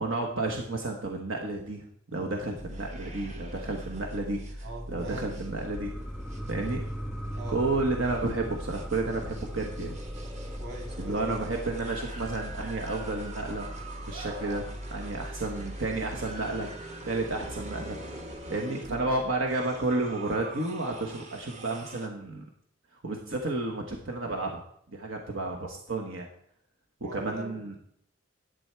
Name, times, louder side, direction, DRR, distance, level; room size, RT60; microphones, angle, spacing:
voice 1, 0.0-1.8 2.1-5.9 6.5-6.8 7.5-10.0 11.0-13.7 14.1-18.0 18.5-22.4 23.0-24.6 24.9-26.3 27.1-27.8, right 2 dB, 85° right, 1 dB, 1.3 m, -31 dB
sound 1, 2.6-22.1, right 1 dB, 35° right, 1.4 m, -40 dB
voice 2, 4.6-5.4 7.3-7.6 10.6-11.4 27.0-27.8, right 1 dB, 55° right, 0 dB, 2.4 m, -42 dB
sound 2, 5.4-14.5 14.9-15.0, equal, 10° right, 1.3 m, -42 dB
11.5 x 8.0 x 4.6 m, 0.69 s
head